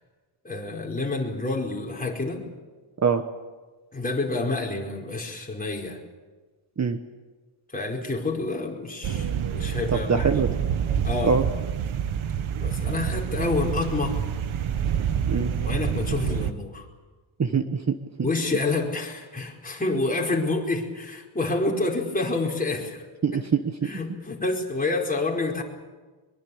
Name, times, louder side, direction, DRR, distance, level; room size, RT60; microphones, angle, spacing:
voice 1, 0.4-2.5 3.9-6.0 7.7-10.3 11.0-11.4 12.6-14.2 15.6-16.9 18.2-23.0 23.3-23.4 23.8-25.6, left 3 dB, 15° left, -1 dB, 4.8 m, -28 dB
sound 1, 9.0-16.5, right 8 dB, 80° right, 1.4 m, -27 dB
voice 2, 9.9-10.5 11.2-11.4 15.3-15.5 17.4-18.3 23.2-23.9, right 5 dB, 35° right, 8 dB, 1.2 m, -24 dB
24.0 x 22.5 x 8.6 m, 1.3 s
wide cardioid pair, 140°, 48 cm